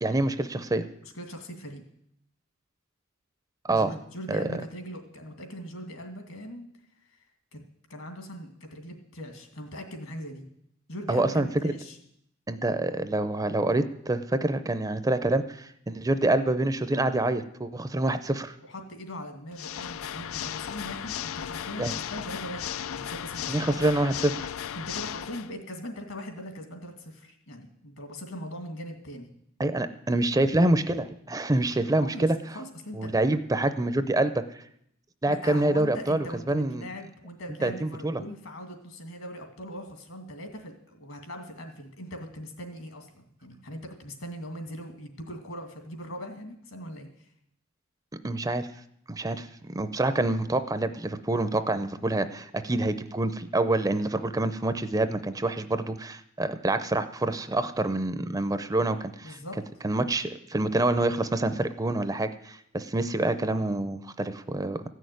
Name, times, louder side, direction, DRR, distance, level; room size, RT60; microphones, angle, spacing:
voice 1, 0.0-0.8 3.6-3.9 4.3-4.6 11.1-11.7 12.5-18.6 21.8-21.9 23.5-24.5 29.6-32.4 32.9-34.4 35.2-36.8 37.6-38.2 48.2-48.7 49.1-59.4 59.8-64.8, right 2 dB, 15° right, 11 dB, 0.5 m, -26 dB
voice 2, 1.0-1.8 3.7-6.7 7.1-7.2 7.5-7.6 7.9-10.5 10.9-12.0 18.6-23.7 24.8-29.3 32.0-32.3 32.5-33.1 35.3-47.3 49.3-49.4 59.2-59.6, equal, 70° left, 5 dB, 2.4 m, -40 dB
Water / Mechanisms, 19.5-25.5, left 9 dB, 90° left, 0.4 m, -35 dB
15.0 x 6.5 x 9.3 m, 0.73 s
head